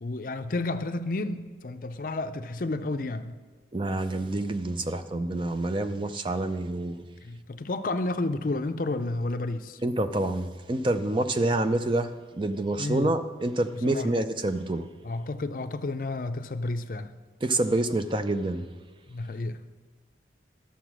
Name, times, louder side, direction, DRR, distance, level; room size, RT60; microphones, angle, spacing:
voice 1, 0.0-3.3 7.2-9.8 10.7-10.9 12.8-13.1 13.7-14.1 15.0-17.1 19.1-19.6, left 2 dB, 50° left, 9 dB, 0.5 m, -31 dB
voice 2, 3.7-7.0 9.8-12.1 12.4-14.9 17.4-18.6, right 2 dB, 25° right, 9 dB, 0.5 m, -27 dB
11.5 x 7.1 x 6.1 m, 1.4 s
head